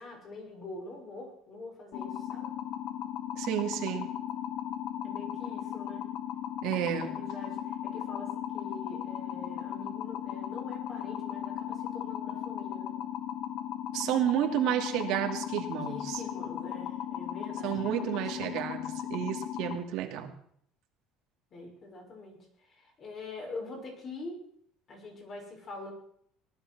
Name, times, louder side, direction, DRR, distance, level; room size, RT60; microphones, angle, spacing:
voice 1, 0.0-2.5 5.0-6.1 7.0-13.0 15.8-18.3 21.5-24.4 24.9-25.9, left 2 dB, 35° left, 1 dB, 6.2 m, -45 dB
sound 1, 1.9-19.8, left 11 dB, 60° left, 1.4 m, -37 dB
voice 2, 3.4-4.1 6.6-7.1 13.9-16.2 17.6-20.3, right 12 dB, 65° right, 3 dB, 2.7 m, -31 dB
19.0 x 11.5 x 6.3 m, 0.65 s
cardioid pair, 135°, 0 cm